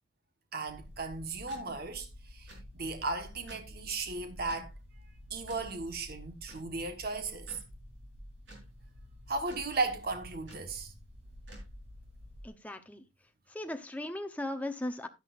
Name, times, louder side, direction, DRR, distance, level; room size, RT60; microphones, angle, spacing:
voice 1, 0.5-4.7 5.3-7.6 9.3-10.9, right 3 dB, 50° right, 1.3 m, -36 dB
sound 1, 0.7-12.5, equal, 65° right, 4.8 m, -50 dB
voice 2, 12.4-13.0 13.5-15.1, left 1 dB, 10° left, 0.8 m, -37 dB
11.0 x 10.5 x 2.5 m
head